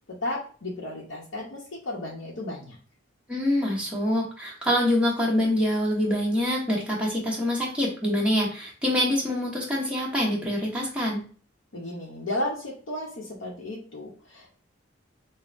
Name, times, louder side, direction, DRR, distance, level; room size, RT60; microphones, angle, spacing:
voice 1, 0.1-2.8 11.7-14.6, left 1 dB, 85° left, -4 dB, 0.8 m, -34 dB
voice 2, 3.3-11.2, left 1 dB, 5° right, -4 dB, 1.0 m, -25 dB
5.3 x 2.1 x 2.5 m, 0.41 s
head